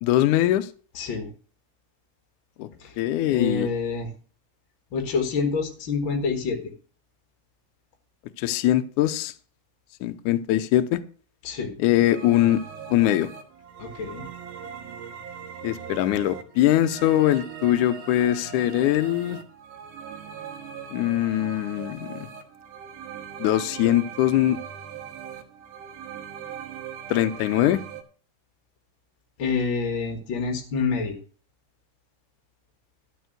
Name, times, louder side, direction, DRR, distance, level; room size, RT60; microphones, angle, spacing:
voice 1, 0.0-0.7 2.6-2.7 3.0-3.7 8.4-9.3 10.0-11.0 11.8-12.6 12.9-13.3 15.6-19.4 20.9-22.2 23.4-24.6 27.1-27.8, left 13 dB, 90° left, 10 dB, 1.8 m, -22 dB
voice 2, 0.9-1.3 2.8-2.9 3.3-4.1 4.9-6.6 11.4-11.7 13.8-14.2 29.4-31.2, left 4 dB, 50° left, 4 dB, 1.4 m, -27 dB
sound 1, 12.1-28.0, right 8 dB, 65° right, 2.6 m, -40 dB
12.5 x 5.5 x 7.8 m, 0.41 s
omnidirectional pair, 4.5 m